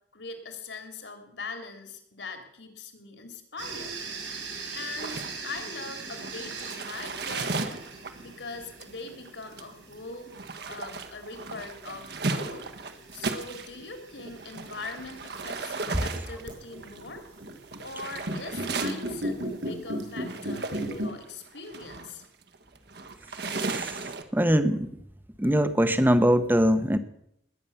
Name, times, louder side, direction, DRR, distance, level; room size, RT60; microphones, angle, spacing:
voice 1, 0.1-3.9 4.7-7.8 8.2-12.7 13.1-17.2 17.8-22.2, left 3 dB, 70° left, 5 dB, 3.2 m, -41 dB
sound 1, 3.6-21.1, right 1 dB, 75° right, 6.7 m, -39 dB
sound 2, 5.0-13.8 14.2-24.2, right 3 dB, 60° right, 1.5 m, -36 dB
voice 2, 23.5-24.0 24.3-24.9 25.4-27.0, equal, 10° right, 11 dB, 1.0 m, -22 dB
20.0 x 9.4 x 7.1 m, 0.76 s
head